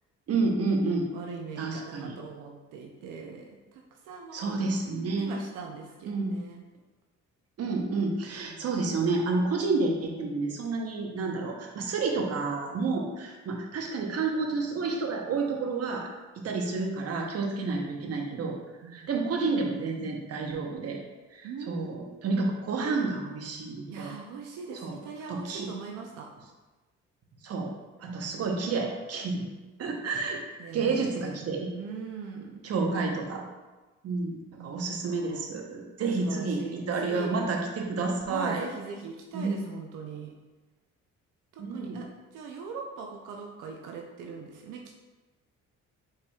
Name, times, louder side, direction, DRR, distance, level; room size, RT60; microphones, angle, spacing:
voice 1, 0.3-1.1 1.6-2.2 4.3-5.4 6.1-6.4 7.6-16.1 16.4-18.6 18.9-21.0 21.3-24.1 24.8-24.9 25.3-25.7 27.4-27.7 28.0-29.5 29.8-31.7 32.6-33.4 34.0-38.6 39.3-39.7 41.6-42.0, right 3 dB, 55° right, 1 dB, 0.8 m, -30 dB
voice 2, 1.1-4.5 5.2-6.6 8.5-8.7 18.8-19.1 21.4-22.2 23.9-26.3 28.0-28.4 30.6-31.4 31.7-32.7 34.5-34.8 35.0-35.4 36.2-37.3 38.3-40.3 41.5-42.1 42.3-44.8, right 5 dB, 90° right, 1 dB, 0.5 m, -41 dB
4.7 x 4.4 x 2.3 m, 1.2 s
cardioid pair, 90°, 30 cm